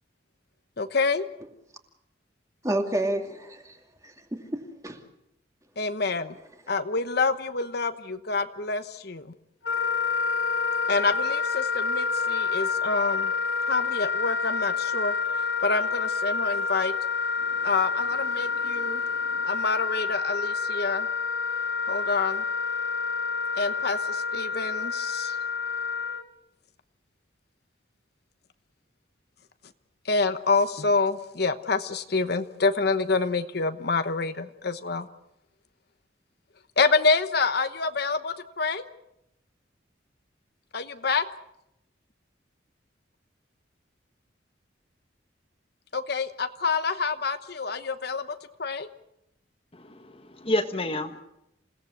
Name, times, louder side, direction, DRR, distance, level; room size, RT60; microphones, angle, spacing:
voice 1, 0.8-1.3 5.8-6.4 6.7-9.3 10.9-13.3 13.7-15.1 15.6-16.9 17.6-19.0 19.4-21.1 21.9-22.4 23.6-25.4 30.0-35.1 36.8-38.8 40.7-41.2 45.9-48.3 48.6-48.9, left 4 dB, 55° left, 9 dB, 1.1 m, -27 dB
voice 2, 2.6-5.0, right 1 dB, 15° right, 4 dB, 2.5 m, -30 dB
Wind instrument woodwind instrument, 9.6-26.2, left 5 dB, 75° left, 3.6 m, -28 dB
voice 3, 17.4-17.7 18.4-19.5 49.7-51.2, left 1 dB, 30° left, 7 dB, 1.4 m, -32 dB
28.0 x 17.5 x 8.1 m, 0.82 s
head